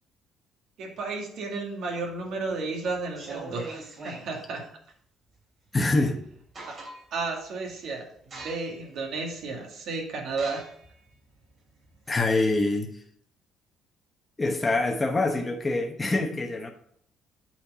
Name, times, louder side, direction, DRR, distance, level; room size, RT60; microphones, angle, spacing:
voice 1, 0.8-4.6 6.7-6.8 7.1-10.6, right 3 dB, 65° right, 1 dB, 2.0 m, -33 dB
sound 1, 2.1-2.5 3.0-4.3 5.9-6.0 6.3-7.2 7.7-7.9 8.3-8.9 9.4-9.5 10.3-12.6, right 2 dB, 40° right, 3.0 m, -42 dB
voice 2, 5.7-6.2 12.1-12.9 14.4-16.7, left 2 dB, 15° left, 3 dB, 0.9 m, -25 dB
8.3 x 4.5 x 4.9 m, 0.66 s
cardioid pair, 140°, 0 cm